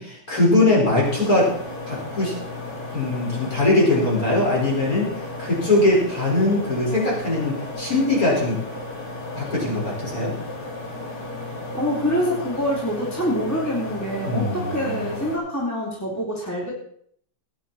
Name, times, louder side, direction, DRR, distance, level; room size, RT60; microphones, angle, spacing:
voice 1, 0.0-1.5 1.9-2.3 2.9-8.6 9.4-10.3 14.3-15.1, left 2 dB, 30° left, -4 dB, 5.2 m, -21 dB
sound 1, 1.0-15.4, left 2 dB, 75° left, 5.1 m, -34 dB
voice 2, 11.7-16.7, equal, 5° left, -4 dB, 2.8 m, -25 dB
19.0 x 10.5 x 4.3 m, 0.63 s
omnidirectional pair, 3.3 m